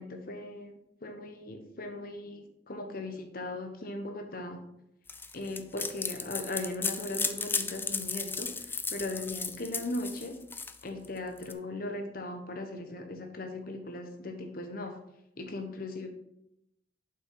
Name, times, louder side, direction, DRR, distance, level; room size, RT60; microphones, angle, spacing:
voice 1, 0.0-4.6 5.3-10.4 10.8-15.0 15.4-16.1, left 2 dB, 55° left, 5 dB, 1.0 m, -38 dB
sound 1, 5.1-11.5, left 4 dB, 10° left, 0.4 m, -35 dB
7.6 x 5.8 x 4.6 m, 0.80 s
head